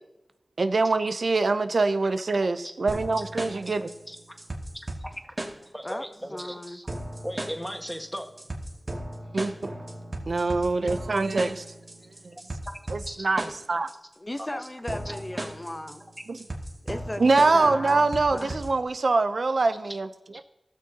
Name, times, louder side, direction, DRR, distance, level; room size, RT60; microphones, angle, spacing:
voice 1, 0.6-3.9 9.3-9.5 10.3-11.6 12.2-12.4 12.9-13.9 16.3-16.4 17.2-20.1, right 3 dB, 75° right, 10 dB, 0.5 m, -24 dB
sound 1, 2.9-18.9, right 1 dB, 40° right, 2.1 m, -37 dB
voice 2, 4.1-4.4 5.0-5.1 5.7-6.9 7.2-8.3 12.6-12.7 13.0-13.3 14.4-14.6 15.0-15.2 19.8-20.0, equal, ahead, 4 dB, 1.5 m, -37 dB
voice 3, 6.3-6.8 14.2-16.0 16.8-17.2 17.5-18.6, left 1 dB, 30° left, 8 dB, 0.7 m, -36 dB
17.5 x 6.4 x 2.8 m, 0.96 s
cardioid pair, 45°, 0 cm